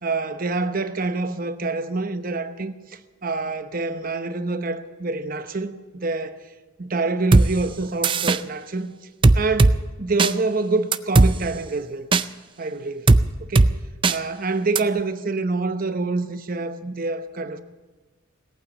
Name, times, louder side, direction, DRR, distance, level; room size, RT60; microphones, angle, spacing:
voice 1, 0.0-6.4 6.8-8.9 9.3-12.1 12.6-13.1 13.4-13.7 14.1-17.6, right 3 dB, 45° right, 0.9 m, -26 dB
sound 1, 7.3-7.5 8.0-8.4 9.2-9.7 10.2-10.3 10.9-11.3 12.1-12.2 13.1-13.2 13.6-13.7 14.0-14.2 14.8-14.9, right 3 dB, 25° right, 0.4 m, -15 dB
18.0 x 8.9 x 8.6 m
head